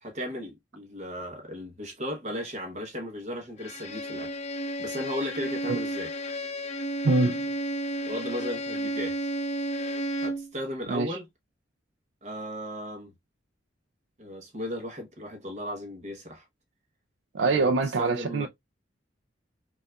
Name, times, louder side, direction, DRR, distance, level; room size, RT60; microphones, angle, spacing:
voice 1, 0.0-4.3 4.8-6.1 8.0-9.2 10.2-11.2 12.2-13.1 14.2-16.4 17.4-18.5, equal, 40° right, 0.9 m, -36 dB
Bowed string instrument, 3.6-10.5, right 1 dB, 40° left, 0.6 m, -32 dB
voice 2, 7.0-7.4 10.9-11.2 17.3-18.5, right 3 dB, 90° right, 0.4 m, -24 dB
5.3 x 2.4 x 2.3 m
head